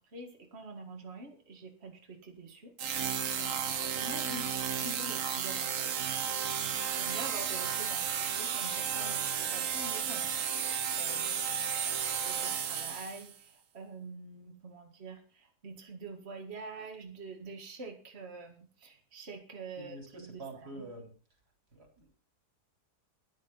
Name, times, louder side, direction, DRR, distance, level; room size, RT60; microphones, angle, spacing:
voice 1, 0.0-6.0 6.5-20.4 20.8-20.9, right 3 dB, 40° right, 2 dB, 2.1 m, -46 dB
sound 1, 2.8-13.3, right 8 dB, 55° right, 1.3 m, -33 dB
voice 2, 19.8-21.1 21.7-22.1, right 2 dB, 80° right, 3 dB, 4.5 m, -46 dB
14.0 x 10.0 x 5.6 m, 0.41 s
omnidirectional pair, 1.7 m